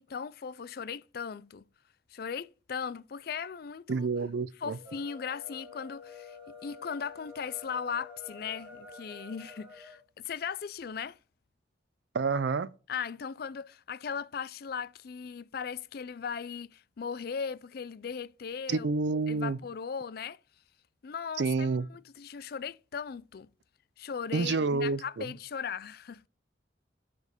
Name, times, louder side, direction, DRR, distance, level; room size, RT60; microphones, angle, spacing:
voice 1, 0.0-1.6 2.1-4.1 4.6-11.2 12.9-18.9 19.3-20.4 21.0-23.5 24.0-26.3, left 6 dB, 55° left, 0.4 m, -38 dB
voice 2, 3.9-4.8 12.1-12.7 18.7-19.6 21.4-21.9 24.3-25.2, right 4 dB, 65° right, 0.5 m, -29 dB
sound 1, 4.7-10.0, left 4 dB, 10° right, 2.9 m, -49 dB
10.5 x 5.1 x 5.1 m
head